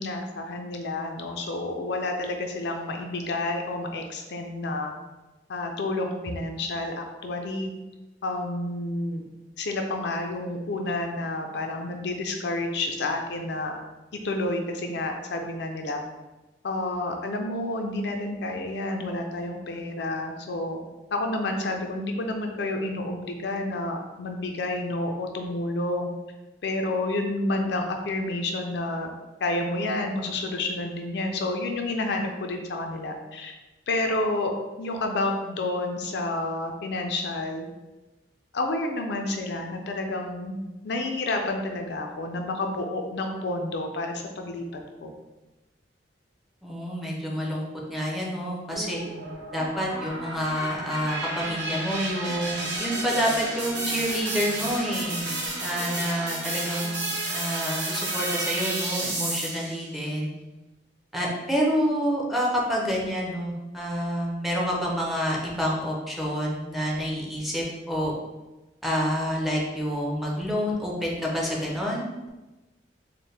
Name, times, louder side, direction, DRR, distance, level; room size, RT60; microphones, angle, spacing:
voice 1, 0.0-4.9 5.5-7.7 8.2-9.2 9.6-13.8 14.1-16.0 16.6-20.8 21.1-26.1 26.6-29.1 29.4-33.6 33.9-34.5 34.8-37.7 38.5-40.6 40.8-44.7 45.0-45.1, left 2 dB, 70° left, 3 dB, 0.5 m, -29 dB
voice 2, 46.6-49.0 49.5-55.3 55.6-60.3 61.1-68.1 68.8-72.3, equal, ahead, -3 dB, 0.6 m, -28 dB
sound 1, 48.7-59.8, right 2 dB, 85° right, 1.0 m, -31 dB
4.4 x 2.1 x 3.3 m, 1.1 s
head